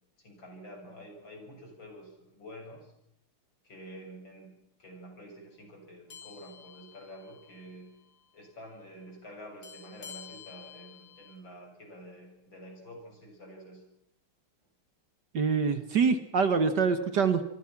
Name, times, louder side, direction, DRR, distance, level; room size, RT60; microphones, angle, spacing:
voice 1, 0.2-2.9 3.6-8.0 8.3-13.8, equal, 60° left, 2 dB, 8.0 m, -48 dB
sound 1, 6.1-7.8 8.0-8.3 9.6-11.4, left 8 dB, 80° left, 4.5 m, -50 dB
voice 2, 15.3-17.4, right 5 dB, 55° right, 11 dB, 1.9 m, -25 dB
28.5 x 24.0 x 6.0 m, 0.77 s
omnidirectional pair, 2.4 m